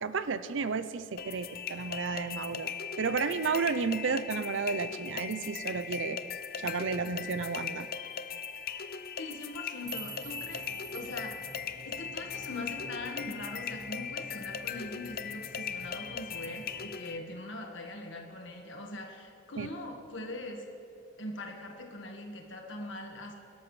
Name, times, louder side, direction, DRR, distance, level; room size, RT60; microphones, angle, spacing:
voice 1, 0.0-6.2 6.6-7.9 19.6-19.7, right 5 dB, 70° right, 13 dB, 0.5 m, -32 dB
sound 1, 1.2-17.2, left 7 dB, 50° left, 0.5 m, -39 dB
sound 2, 7.0-7.1 7.3-7.4 7.6-7.8 8.1-8.2 8.9-9.1 9.4-11.7, right 6 dB, 40° right, 2.6 m, -47 dB
voice 2, 9.2-10.7 10.9-11.4 11.8-20.6 21.2-23.3, left 2 dB, 70° left, 1 dB, 1.5 m, -41 dB
sound 3, 9.8-16.9, right 1 dB, 55° right, 1.5 m, -52 dB
23.5 x 12.5 x 3.2 m, 2.6 s
head